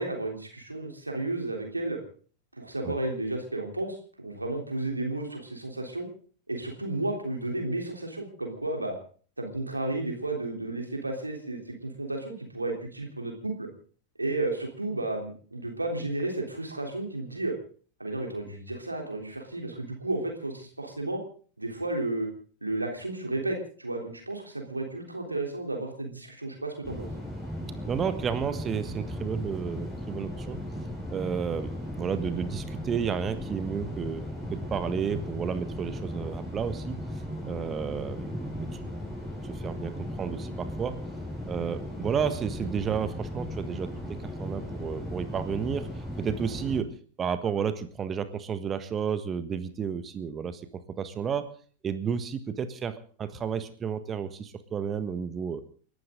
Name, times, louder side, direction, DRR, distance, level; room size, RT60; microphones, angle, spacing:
voice 1, 0.0-2.0 2.6-6.1 6.5-8.9 9.4-13.7 14.2-17.5 18.0-21.2 21.6-22.3 22.6-27.1, right 2 dB, 85° right, 2 dB, 3.5 m, -32 dB
sound 1, 26.8-46.8, left 1 dB, 5° left, 7.1 m, -36 dB
voice 2, 27.9-30.6 31.1-34.2 34.5-37.0 37.4-39.0 39.4-41.0 41.5-45.9 46.2-51.5 51.8-55.6, right 7 dB, 25° right, 12 dB, 1.5 m, -32 dB
29.5 x 12.0 x 3.8 m, 0.43 s
figure-of-eight pair, 90°, 0 cm